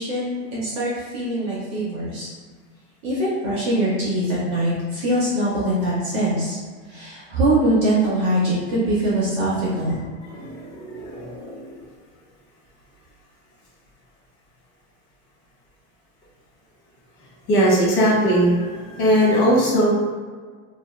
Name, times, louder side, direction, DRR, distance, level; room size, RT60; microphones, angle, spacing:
voice 1, 0.0-2.3 3.0-6.6 6.9-10.0, right 1 dB, 25° right, -7 dB, 0.4 m, -22 dB
voice 2, 10.3-11.7 17.5-19.9, equal, 60° left, -5 dB, 1.2 m, -20 dB
2.4 x 2.3 x 2.9 m, 1.5 s
supercardioid pair, 175°, 40 cm